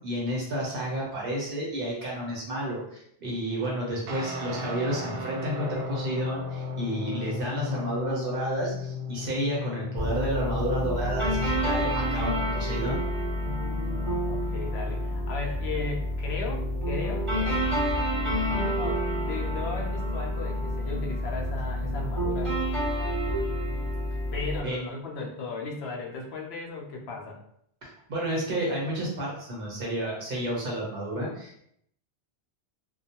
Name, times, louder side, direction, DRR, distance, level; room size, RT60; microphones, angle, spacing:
voice 1, 0.0-13.0 24.6-24.8 27.8-31.7, right 1 dB, 55° right, -3 dB, 1.0 m, -31 dB
Guitar, 4.1-13.0, left 3 dB, 85° right, 0.9 m, -36 dB
sound 1, 10.0-24.6, equal, 30° right, 1.0 m, -28 dB
voice 2, 13.6-17.6 18.5-22.6 24.3-27.4, left 3 dB, 70° left, 0 dB, 0.8 m, -36 dB
2.3 x 2.2 x 2.8 m, 0.70 s
omnidirectional pair, 1.1 m